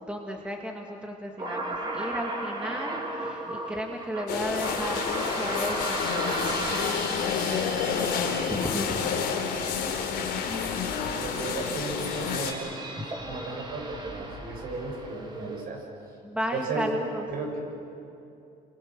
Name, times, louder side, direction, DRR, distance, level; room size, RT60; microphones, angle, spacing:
voice 1, 0.0-6.2 6.5-9.3 16.2-17.3, equal, 5° right, 0 dB, 2.6 m, -35 dB
sound 1, 1.4-15.6, right 2 dB, 25° right, 3.8 m, -36 dB
sound 2, 4.3-12.5, left 7 dB, 80° left, 3.6 m, -29 dB
voice 2, 11.2-12.7 13.2-15.8 16.5-16.9 17.3-17.6, right 3 dB, 60° right, 1 dB, 7.0 m, -35 dB
28.5 x 26.5 x 6.4 m, 2.7 s
cardioid pair, 110°, 17 cm